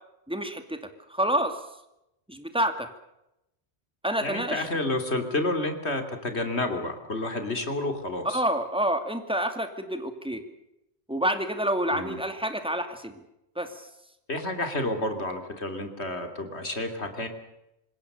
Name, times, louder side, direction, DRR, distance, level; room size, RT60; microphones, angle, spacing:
voice 1, 0.3-0.8 1.1-1.6 2.3-2.9 4.0-4.7 8.3-10.4 11.1-13.1 13.6-13.7, right 1 dB, 5° right, 7 dB, 2.4 m, -28 dB
voice 2, 4.2-8.4 11.9-12.2 14.3-17.3, left 2 dB, 80° left, 6 dB, 3.3 m, -30 dB
26.5 x 21.0 x 6.8 m, 0.86 s
omnidirectional pair, 1.1 m